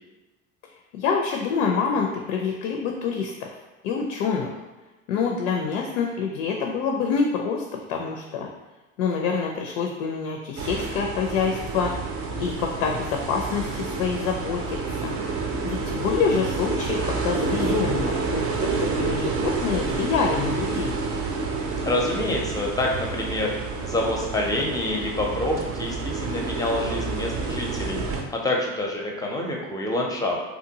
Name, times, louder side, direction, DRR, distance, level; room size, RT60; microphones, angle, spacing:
voice 1, 0.9-3.3 3.8-4.5 5.1-8.5 9.0-11.9 12.4-15.1 15.6-18.5 18.8-21.0, left 5 dB, 70° left, 2 dB, 0.5 m, -26 dB
sound 1, 10.6-28.2, right 4 dB, 35° right, 0.5 m, -29 dB
voice 2, 21.8-30.3, left 1 dB, 10° left, 0 dB, 0.5 m, -27 dB
2.7 x 2.3 x 2.7 m, 1.2 s
hypercardioid pair, 65°, 39 cm